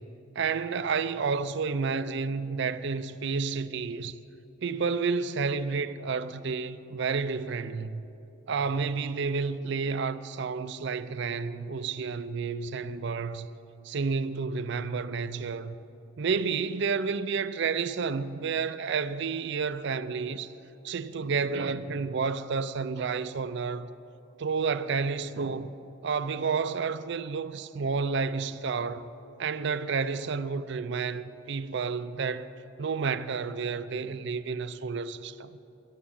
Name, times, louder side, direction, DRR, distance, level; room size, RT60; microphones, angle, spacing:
voice 1, 0.4-4.1 4.6-8.1 8.5-13.5 13.8-15.8 16.2-20.5 20.8-23.9 24.4-25.7 26.0-29.1 29.4-32.5 32.8-35.5, right 5 dB, 65° right, 0.5 m, -30 dB
12.0 x 11.0 x 8.6 m
head